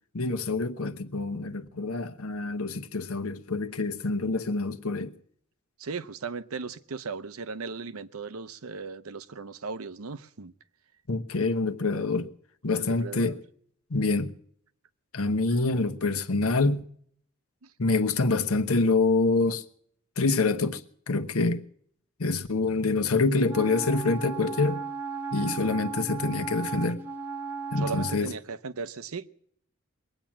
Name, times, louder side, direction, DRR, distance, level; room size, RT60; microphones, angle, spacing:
voice 1, 0.1-5.1 11.1-12.3 12.6-13.4 13.9-14.3 15.1-16.9 17.8-19.6 20.2-21.6 22.2-24.8 25.3-27.0 27.7-28.3, left 3 dB, 85° left, 1.0 m, -26 dB
voice 2, 5.8-10.5 12.8-13.4 17.6-17.7 27.8-29.3, right 4 dB, 80° right, 0.7 m, -37 dB
Wind instrument woodwind instrument, 23.5-28.3, right 5 dB, 10° right, 0.9 m, -36 dB
21.5 x 9.0 x 7.3 m
head